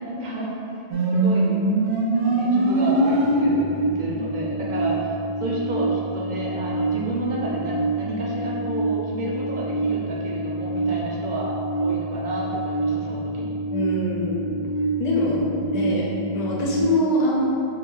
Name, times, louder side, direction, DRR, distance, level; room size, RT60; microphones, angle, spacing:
voice 1, 0.0-0.5 0.9-1.6 2.1-13.5 15.2-15.8, right 2 dB, 50° right, -5 dB, 0.8 m, -31 dB
sound 1, 0.9-16.8, right 2 dB, 75° right, 0.9 m, -25 dB
voice 2, 13.7-14.5 15.0-16.0 16.3-17.5, left 1 dB, 45° left, -4 dB, 0.8 m, -24 dB
4.1 x 2.6 x 3.7 m, 2.7 s
omnidirectional pair, 1.1 m